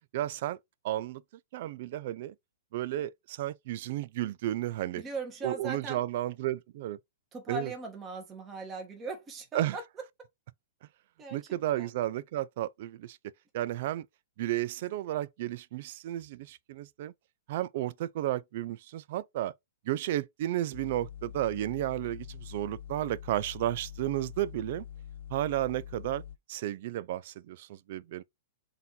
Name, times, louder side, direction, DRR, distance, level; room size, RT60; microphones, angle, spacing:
voice 1, 0.1-0.6 0.8-1.2 1.5-2.3 2.7-5.0 5.4-7.0 7.5-7.7 9.5-9.8 11.3-13.2 13.5-14.0 14.4-17.1 17.5-19.5 19.9-24.8 25.3-26.2 26.5-28.2, right 14 dB, 50° right, 0.4 m, -33 dB
voice 2, 4.9-6.0 7.3-9.8 11.2-11.9, right 3 dB, 15° right, 1.1 m, -39 dB
sound 1, 20.7-26.4, left 10 dB, 50° left, 0.3 m, -45 dB
3.9 x 2.7 x 3.9 m
hypercardioid pair, 160°, 0 cm